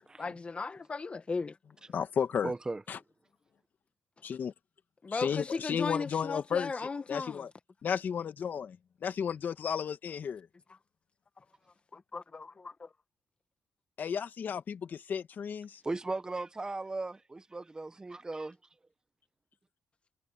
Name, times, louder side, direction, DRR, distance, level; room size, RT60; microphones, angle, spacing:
voice 1, 0.2-1.6 5.0-7.5 11.9-12.9, left 4 dB, 30° left, 1.8 m, -36 dB
voice 2, 1.9-2.5 2.9-3.0 4.2-4.5 5.1-7.5 7.8-8.8 9.0-10.5 14.0-15.8, left 7 dB, 55° left, 1.9 m, -33 dB
voice 3, 2.4-2.8 15.8-18.6, right 3 dB, 20° right, 1.3 m, -37 dB
cardioid pair, 95°, 4 cm